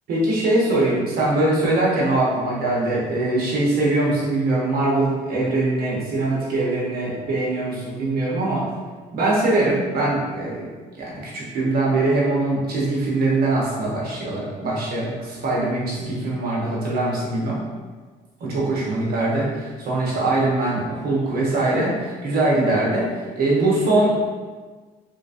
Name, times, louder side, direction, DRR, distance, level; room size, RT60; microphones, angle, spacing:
voice 1, 0.1-8.7 9.1-10.7 11.0-17.6 18.4-24.2, right 2 dB, 65° right, -5 dB, 1.1 m, -22 dB
3.2 x 3.0 x 2.6 m, 1.4 s
cardioid pair, 110°, 17 cm